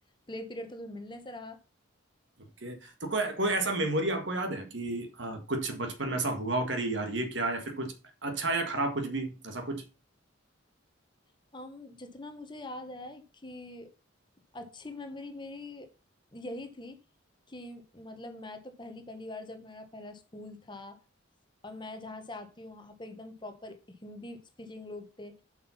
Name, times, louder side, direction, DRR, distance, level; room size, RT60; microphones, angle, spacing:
voice 1, 0.3-1.6 11.5-13.9 14.5-15.9 16.3-17.0 17.5-21.0 21.6-25.3, left 1 dB, 25° left, 1.1 m, -43 dB
voice 2, 2.6-7.9 8.2-9.8, right 2 dB, 60° right, 1.8 m, -31 dB
7.5 x 5.8 x 5.7 m
head